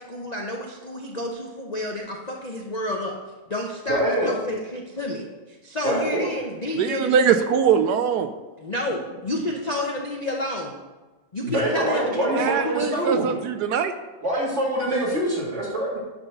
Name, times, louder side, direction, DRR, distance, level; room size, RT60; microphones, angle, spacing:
voice 1, 0.0-3.2 3.5-7.4 8.6-10.7 11.3-13.4, left 1 dB, 75° left, 0 dB, 0.3 m, -30 dB
voice 2, 3.9-4.3 5.8-6.3 11.4-13.3 14.2-16.0, right 1 dB, 35° right, -4 dB, 2.5 m, -24 dB
voice 3, 6.8-8.3 12.3-13.9, right 7 dB, 75° right, 8 dB, 0.9 m, -22 dB
9.7 x 4.0 x 6.9 m, 1.2 s
omnidirectional pair, 2.1 m